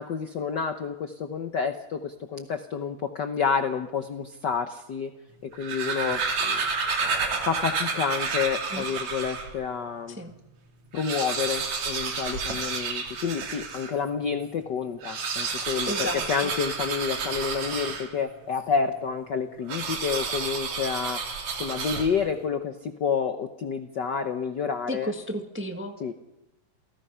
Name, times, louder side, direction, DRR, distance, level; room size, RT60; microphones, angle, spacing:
voice 1, 0.0-5.1 5.4-6.6 7.4-10.2 10.9-21.2 21.5-25.1 26.0-26.1, left 6 dB, 80° left, 8 dB, 0.9 m, -29 dB
sound 1, 5.4-9.6 10.1-10.2 10.4-10.5 10.8-14.0 14.9-18.4 19.7-22.4, right 5 dB, 70° right, 3.6 m, -30 dB
voice 2, 15.9-16.5 24.9-26.1, equal, 10° right, 4 dB, 0.8 m, -33 dB
28.5 x 17.5 x 5.7 m, 0.93 s
omnidirectional pair, 3.4 m